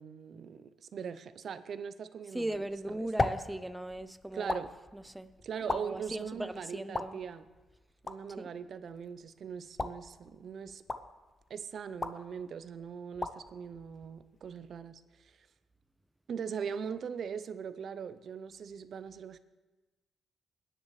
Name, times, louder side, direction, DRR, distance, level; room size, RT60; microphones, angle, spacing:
voice 1, 0.0-2.5 2.9-3.1 4.3-4.7 5.4-7.5 8.0-10.8 11.5-15.5 16.3-19.4, right 7 dB, 60° right, 12 dB, 0.6 m, -41 dB
voice 2, 2.3-4.7 4.9-5.3 5.7-7.2 8.4-8.5, right 1 dB, 10° right, 13 dB, 0.6 m, -38 dB
sound 1, 2.5-14.7, left 3 dB, 30° left, 0.7 m, -40 dB
23.0 x 10.0 x 3.2 m, 1.2 s
cardioid pair, 105°, 0 cm